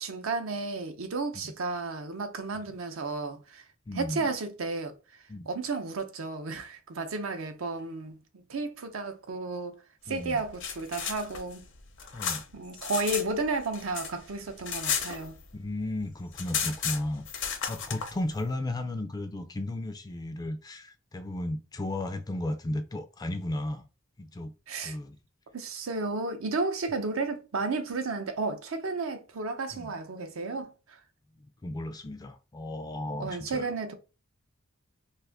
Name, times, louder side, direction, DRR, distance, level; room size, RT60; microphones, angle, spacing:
voice 1, 0.0-3.6 3.9-4.9 5.5-8.2 8.5-9.7 10.1-11.6 12.5-15.4 24.7-25.0 25.5-31.0 33.2-33.9, right 3 dB, 70° right, 0.6 m, -33 dB
voice 2, 3.9-4.3 5.3-5.5 10.1-10.4 12.1-12.4 15.5-23.9 24.2-24.5 24.8-25.2 29.7-29.9 31.6-33.7, left 1 dB, 20° left, 0.3 m, -34 dB
sound 1, 10.3-13.3 13.6-15.7 16.0-16.1 16.3-18.1, left 7 dB, 60° left, 0.6 m, -33 dB
2.5 x 2.4 x 3.4 m
head